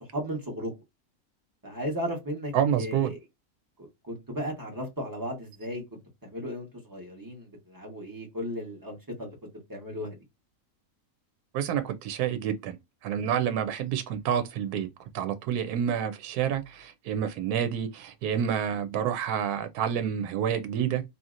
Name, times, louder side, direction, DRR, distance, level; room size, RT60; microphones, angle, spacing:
voice 1, 0.1-0.7 1.6-3.2 3.8-5.8 6.2-9.3 9.7-10.2, equal, 15° right, 1.0 m, -35 dB
voice 2, 2.5-3.1 11.5-12.8 13.0-14.9 15.1-21.0, right 9 dB, 85° right, 1.1 m, -28 dB
2.7 x 2.7 x 2.4 m
omnidirectional pair, 1.6 m